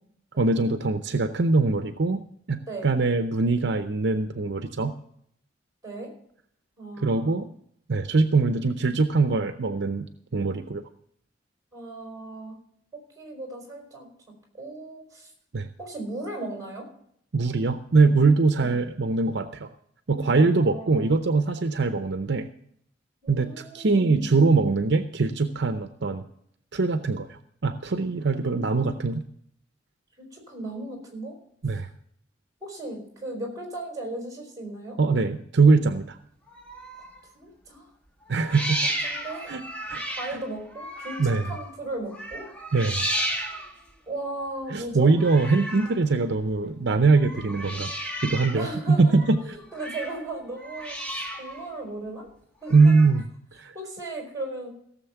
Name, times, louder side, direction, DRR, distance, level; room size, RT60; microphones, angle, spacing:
voice 1, 0.4-4.9 7.0-7.5 7.9-10.1 10.3-10.8 15.5-15.7 17.3-19.7 20.1-22.5 23.3-26.2 26.7-29.2 31.6-31.9 35.0-36.2 38.3-38.8 39.5-39.6 39.9-40.0 40.3-40.4 41.2-41.4 42.7-43.0 44.7-47.9 48.2-49.4 52.7-53.2 53.6-53.7, right 3 dB, 65° right, 9 dB, 0.7 m, -22 dB
voice 2, 6.8-7.3 11.7-12.6 13.1-14.1 14.5-15.3 15.8-16.9 18.6-18.8 20.2-21.1 23.2-24.3 30.2-31.3 32.6-35.0 37.3-37.9 38.8-39.6 40.1-42.5 44.1-45.1 48.5-49.1 49.4-52.3 52.6-52.9 53.7-54.7, right 2 dB, 20° right, 1 dB, 5.1 m, -36 dB
sound 1, 36.5-37.3 38.3-41.8 42.1-43.9 45.1-46.0 47.1-48.7 49.0-50.2 50.5-51.7 52.7-53.2, right 1 dB, 5° left, 1.7 m, -34 dB
16.5 x 7.2 x 5.8 m, 0.68 s
head